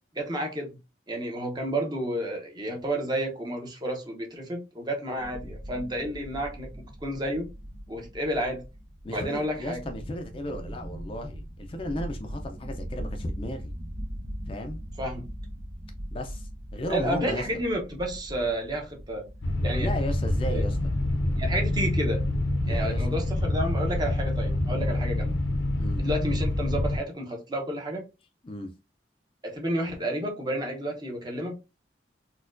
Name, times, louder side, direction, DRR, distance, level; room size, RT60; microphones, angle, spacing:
voice 1, 0.1-0.8 1.1-6.7 7.0-7.5 7.9-8.6 9.0-9.8 15.0-15.3 16.9-19.2 19.6-19.9 20.5-20.6 21.4-22.3 22.7-25.3 26.0-28.0 29.4-31.5, right 1 dB, 20° right, 0.7 m, -31 dB
sound 1, 5.2-22.6, equal, 50° right, 1.3 m, -40 dB
voice 2, 9.0-13.7 14.5-14.8 16.1-17.5 19.8-20.8 22.6-23.1 25.8-26.0 28.4-28.7, left 1 dB, 30° left, 0.4 m, -35 dB
sound 2, 19.4-27.0, left 1 dB, 75° left, 0.6 m, -26 dB
4.1 x 2.2 x 2.5 m
head